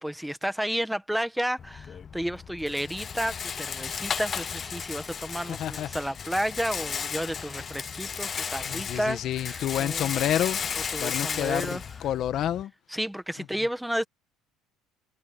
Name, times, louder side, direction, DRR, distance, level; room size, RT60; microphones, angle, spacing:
voice 1, 0.0-10.1 10.9-11.8 12.9-14.0, equal, ahead, 1.3 m, -32 dB
Rattle, 1.6-12.6, left 7 dB, 25° left, 0.5 m, -34 dB
voice 2, 5.5-5.9 8.6-10.6 11.0-12.7, left 11 dB, 45° left, 1.2 m, -29 dB
cardioid pair, 145°, 0 cm